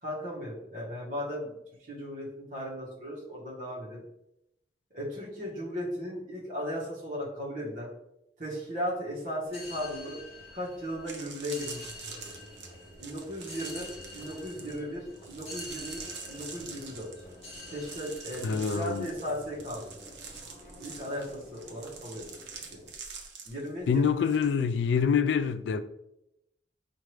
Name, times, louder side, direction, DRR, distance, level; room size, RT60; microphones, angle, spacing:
voice 1, 0.0-1.6 1.9-4.0 4.9-7.9 8.4-10.2 10.5-12.1 13.0-17.1 17.7-19.9 20.8-22.2 22.7-22.8 23.4-24.3, equal, 50° right, 1.1 m, -36 dB
sound 1, 9.4-22.9, left 2 dB, 35° left, 1.0 m, -48 dB
sound 2, 11.0-24.5 24.7-25.1, right 5 dB, 90° right, 0.8 m, -45 dB
voice 2, 18.4-19.1 23.9-25.8, left 6 dB, 85° left, 0.3 m, -26 dB
4.5 x 2.5 x 3.2 m
head